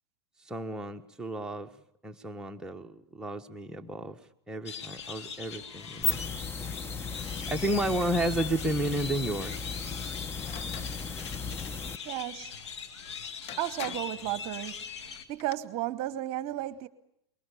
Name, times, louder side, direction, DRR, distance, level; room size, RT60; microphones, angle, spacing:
voice 1, 0.4-1.7 2.0-4.2 4.5-6.2 7.5-9.6, right 1 dB, 5° right, 1.4 m, -32 dB
sound 1, 4.7-15.2, left 6 dB, 75° left, 2.4 m, -41 dB
sound 2, 5.8-12.0, left 4 dB, 15° left, 0.9 m, -36 dB
sound 3, 10.4-10.9 13.0-13.1 13.5-14.2 15.2-15.6, left 10 dB, 45° left, 1.2 m, -43 dB
voice 2, 11.8-12.5 13.6-16.9, right 14 dB, 45° right, 1.1 m, -34 dB
24.5 x 22.0 x 6.9 m
hypercardioid pair, 100°, 14 cm